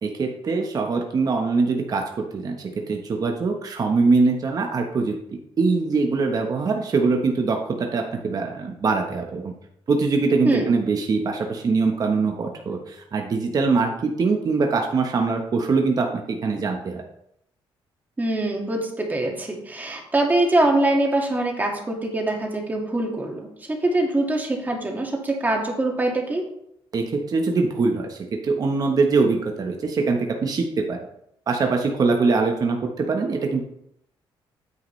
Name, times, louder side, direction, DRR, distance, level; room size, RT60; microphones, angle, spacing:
voice 1, 0.0-2.0 2.3-2.6 2.9-9.5 9.9-17.0 26.9-28.2 28.4-31.0 31.5-33.6, right 4 dB, 45° right, 2 dB, 1.1 m, -23 dB
voice 2, 18.2-26.5, right 2 dB, 20° right, 1 dB, 2.1 m, -23 dB
9.5 x 7.9 x 3.3 m, 0.76 s
cardioid pair, 115°, 9 cm